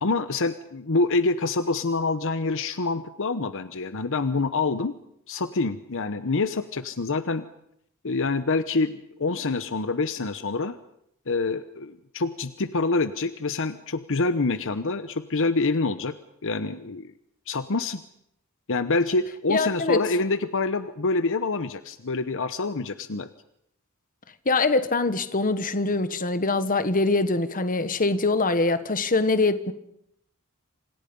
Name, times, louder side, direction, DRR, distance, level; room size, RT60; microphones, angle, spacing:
voice 1, 0.0-4.9 5.3-7.4 8.0-10.7 11.3-16.1 16.4-17.1 17.5-18.0 18.7-23.3, left 3 dB, 60° left, 1.0 m, -26 dB
voice 2, 19.5-20.0 24.4-29.7, left 3 dB, 40° left, 1.5 m, -23 dB
27.5 x 27.0 x 5.4 m
head